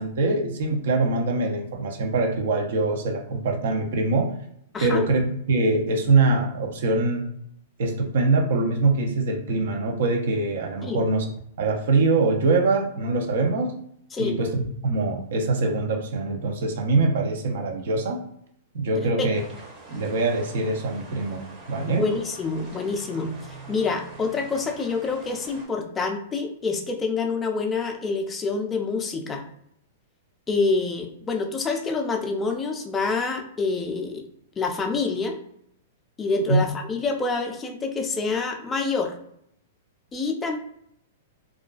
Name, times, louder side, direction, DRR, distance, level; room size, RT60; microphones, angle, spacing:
voice 1, 0.0-4.3 4.8-5.2 5.5-7.2 7.8-11.3 11.6-13.7 14.2-18.2 18.7-19.4 19.9-21.4 21.7-22.0 36.5-36.6, right 3 dB, 70° right, 2 dB, 0.6 m, -23 dB
voice 2, 4.7-5.1 10.8-11.0 14.1-14.4 19.0-19.3 21.9-23.3 23.7-29.4 30.5-34.3 34.6-35.4 36.2-39.1 40.1-40.6, left 4 dB, 15° left, 3 dB, 0.4 m, -27 dB
sound 1, 19.3-25.7, right 2 dB, 25° right, 0.7 m, -44 dB
2.4 x 2.2 x 2.4 m, 0.71 s
hypercardioid pair, 145°, 0 cm